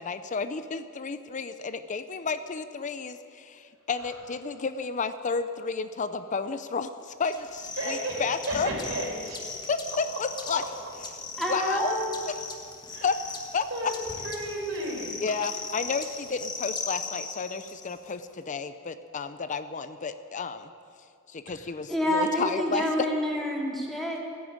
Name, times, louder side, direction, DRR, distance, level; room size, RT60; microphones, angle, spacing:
voice 1, 0.0-8.7 9.7-10.6 11.5-12.0 12.3-12.4 13.0-13.2 13.5-13.7 15.2-20.7 21.3-22.9, left 5 dB, 40° left, 11 dB, 0.5 m, -31 dB
sound 1, 7.2-18.1, left 4 dB, 20° left, 1.4 m, -39 dB
voice 2, 7.7-9.4 10.6-10.7 12.9-13.1 13.7-13.9 14.2-15.2 21.5-21.6, right 1 dB, 70° right, -1 dB, 4.5 m, -33 dB
voice 3, 11.4-12.2 21.9-24.2, equal, ahead, -3 dB, 2.5 m, -27 dB
15.5 x 10.5 x 8.7 m, 2.4 s
head